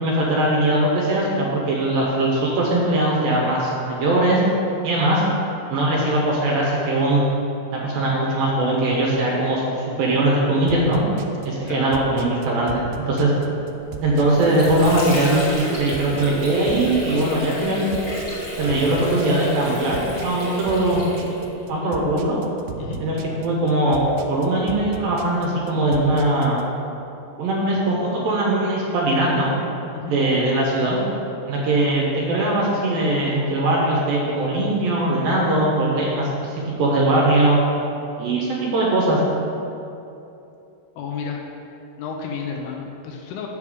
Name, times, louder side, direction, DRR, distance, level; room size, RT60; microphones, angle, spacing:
voice 1, 0.0-4.4 4.8-5.2 5.7-7.2 7.7-11.0 11.4-12.8 13.1-13.3 14.0-15.5 15.8-17.9 18.5-21.0 21.7-22.4 23.0-24.0 24.3-26.6 27.4-29.5 30.1-31.0 31.5-37.6 38.2-39.2, right 1 dB, 70° right, -4 dB, 2.5 m, -20 dB
sound 1, 10.7-26.6, right 6 dB, 90° right, 2.1 m, -37 dB
Water / Sink (filling or washing), 14.0-21.7, equal, 40° left, 1.7 m, -31 dB
voice 2, 41.0-41.4 42.0-43.5, left 6 dB, 80° left, 1 dB, 2.5 m, -31 dB
6.9 x 6.8 x 4.9 m, 2.8 s
omnidirectional pair, 4.9 m